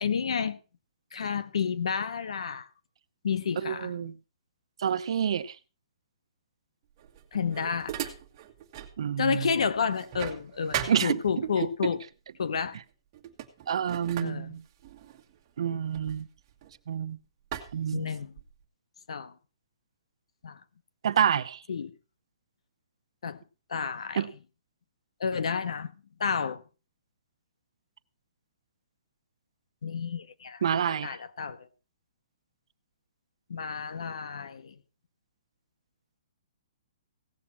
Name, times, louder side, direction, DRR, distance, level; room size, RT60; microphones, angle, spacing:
voice 1, 0.0-0.6 1.1-2.7 3.2-3.9 7.3-7.9 9.2-12.0 12.4-12.8 14.2-14.5 17.9-18.3 19.1-19.3 20.4-20.6 21.7-21.9 23.2-23.4 23.7-24.2 25.2-25.9 26.2-26.6 29.8-30.6 31.0-31.6 33.5-34.7, left 6 dB, 80° left, 1.1 m, -30 dB
voice 2, 3.6-4.1 4.8-5.5 9.0-9.5 10.9-11.5 13.7-14.6 15.6-16.3 16.9-17.2 17.7-18.1 21.0-21.6 24.2-24.3 30.6-31.2, right 8 dB, 65° right, 0.8 m, -28 dB
sound 1, 7.0-9.0 9.4-11.7 12.5-12.8 13.1-17.0 17.5-18.6, right 10 dB, 30° right, 1.6 m, -39 dB
17.0 x 7.3 x 4.4 m
hypercardioid pair, 160°, 3 cm